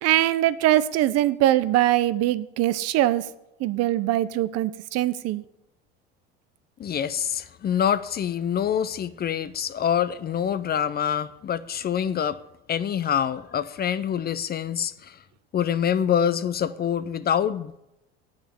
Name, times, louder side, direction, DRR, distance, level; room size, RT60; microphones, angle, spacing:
voice 1, 0.0-3.2 3.6-5.4, right 14 dB, 55° right, 0.7 m, -22 dB
voice 2, 6.8-12.4 12.7-14.9 15.5-17.8, left 9 dB, 35° left, 0.6 m, -25 dB
8.6 x 6.3 x 8.3 m
hypercardioid pair, 80°, 30 cm